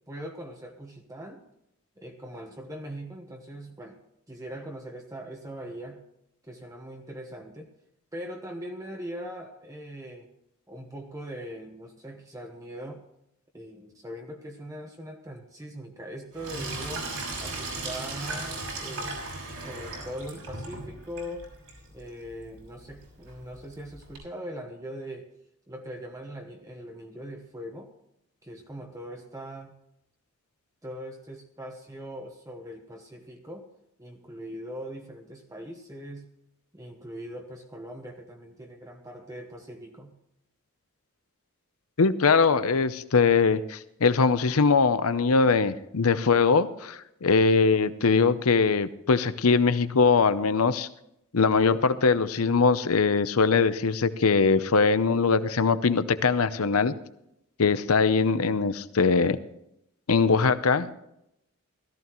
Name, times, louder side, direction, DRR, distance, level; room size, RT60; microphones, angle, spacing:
voice 1, 0.1-1.4 2.0-4.0 4.3-6.0 6.4-7.7 8.1-10.3 10.7-13.0 13.5-17.1 17.4-19.2 19.6-21.5 21.9-25.3 25.7-27.9 28.4-29.8 30.8-33.7 34.0-36.3 36.7-40.1, equal, 15° right, 2 dB, 1.1 m, -41 dB
Sink (filling or washing), 16.3-24.2, right 2 dB, 80° right, 6.0 m, -38 dB
voice 2, 42.0-50.9 51.3-56.9 57.6-59.4 60.1-60.9, left 4 dB, 80° left, 13 dB, 0.7 m, -22 dB
17.0 x 14.5 x 3.1 m, 0.79 s
head